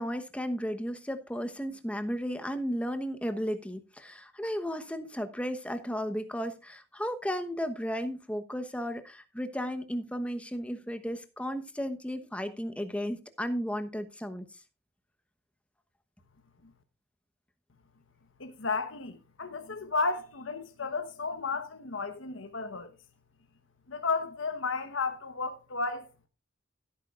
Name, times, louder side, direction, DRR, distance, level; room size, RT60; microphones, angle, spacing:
voice 1, 0.0-14.6, equal, 5° left, 1.0 m, -34 dB
voice 2, 18.4-22.9 23.9-26.3, left 4 dB, 75° left, 1.1 m, -33 dB
16.0 x 9.0 x 2.5 m
head